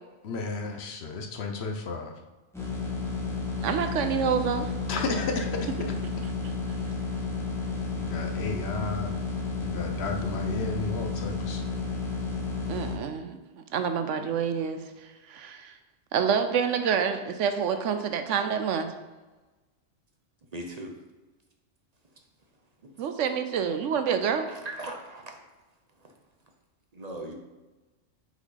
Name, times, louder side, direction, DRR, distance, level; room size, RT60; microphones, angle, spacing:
voice 1, 0.2-2.2 4.9-5.7 7.9-9.1 9.5-11.7, left 3 dB, 60° left, 3 dB, 0.9 m, -33 dB
sound 1, 2.5-12.9, left 3 dB, ahead, 1.5 m, -32 dB
voice 2, 3.6-4.6 12.7-13.4 13.7-14.8 15.3-15.7 16.1-18.9 23.0-24.5, right 7 dB, 75° right, 8 dB, 1.0 m, -27 dB
voice 3, 20.5-20.9 24.5-25.3 26.9-27.3, right 1 dB, 35° right, 2 dB, 0.8 m, -38 dB
6.1 x 5.5 x 3.9 m, 1.2 s
omnidirectional pair, 1.3 m